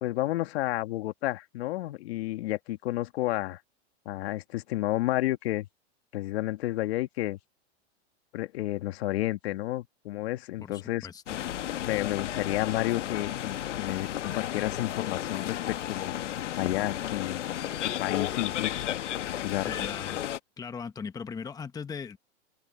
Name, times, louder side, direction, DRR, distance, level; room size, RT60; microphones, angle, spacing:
voice 1, 0.0-3.6 4.1-5.7 6.1-7.4 8.3-11.1 11.9-16.1 16.6-17.4 17.8-19.7, left 16 dB, 60° left, 1.8 m, -31 dB
voice 2, 10.6-11.4 19.6-20.2 20.6-22.2, left 6 dB, 10° left, 1.1 m, -39 dB
sound 1, 11.3-20.4, left 11 dB, 90° left, 1.6 m, -33 dB
supercardioid pair, 145°, 35 cm